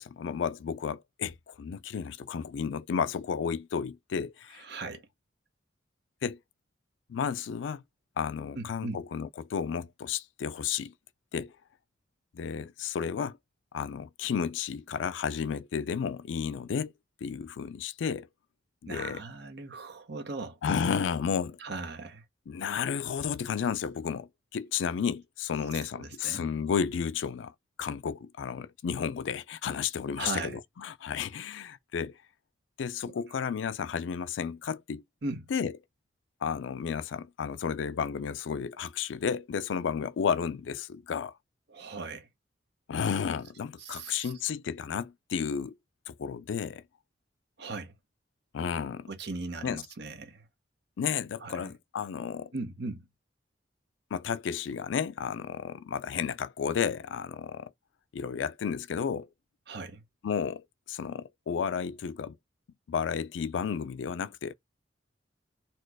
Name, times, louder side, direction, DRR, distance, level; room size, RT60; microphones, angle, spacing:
voice 1, 0.0-4.7 6.2-6.4 7.1-7.8 8.2-10.9 11.3-11.5 12.3-13.4 13.7-16.9 17.2-18.3 18.8-19.2 20.6-21.6 22.5-27.5 27.8-32.2 32.8-35.0 35.5-35.7 36.4-41.3 42.9-45.7 46.1-46.8 48.5-49.1 49.6-49.8 51.0-52.5 54.1-57.7 58.1-59.3 60.2-62.4 62.9-64.5, left 7 dB, 85° left, 0.4 m, -32 dB
voice 2, 4.6-5.1 8.5-9.0 18.9-20.6 21.6-22.2 25.9-26.5 30.2-30.6 35.2-35.4 41.7-42.3 43.8-44.3 47.6-47.9 49.1-50.4 51.4-51.7 52.5-53.1 59.7-60.0, right 3 dB, 65° right, 0.9 m, -38 dB
4.2 x 2.3 x 4.7 m
head